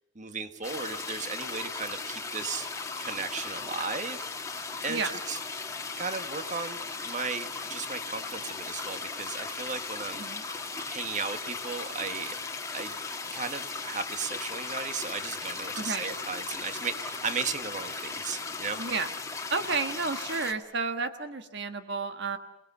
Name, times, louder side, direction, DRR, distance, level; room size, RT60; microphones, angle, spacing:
voice 1, 0.1-2.7 3.0-4.3 4.8-5.4 6.0-10.3 10.9-12.4 12.7-13.0 13.2-18.8, right 5 dB, 40° right, 8 dB, 1.6 m, -35 dB
sound 1, 0.6-20.5, left 4 dB, 15° left, 2.0 m, -37 dB
voice 2, 15.8-16.1 18.8-19.1 19.5-22.4, right 4 dB, 60° right, 8 dB, 1.5 m, -31 dB
28.5 x 19.5 x 6.9 m, 0.98 s
head